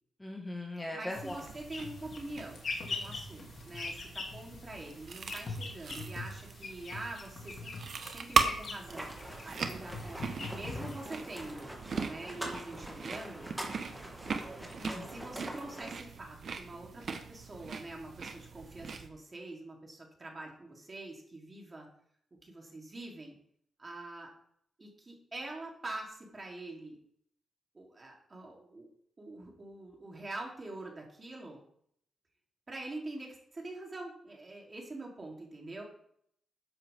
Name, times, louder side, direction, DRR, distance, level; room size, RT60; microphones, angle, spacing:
voice 1, 0.2-1.4 14.8-15.1, left 1 dB, 10° left, 0 dB, 1.9 m, -39 dB
voice 2, 0.9-7.8 8.0-9.1 9.4-11.7 12.0-13.5 15.1-21.9 22.4-23.4 23.8-24.3 24.8-27.0 27.7-28.9 29.2-31.6 32.7-35.8, right 2 dB, 30° right, -1 dB, 3.5 m, -45 dB
sound 1, 1.1-11.5, left 3 dB, 55° left, 2.9 m, -43 dB
sound 2, 1.3-19.1, right 5 dB, 55° right, 1.2 m, -39 dB
sound 3, 8.9-15.9, right 1 dB, 10° right, 2.7 m, -44 dB
13.0 x 10.0 x 3.7 m, 0.68 s
cardioid pair, 105°, 0 cm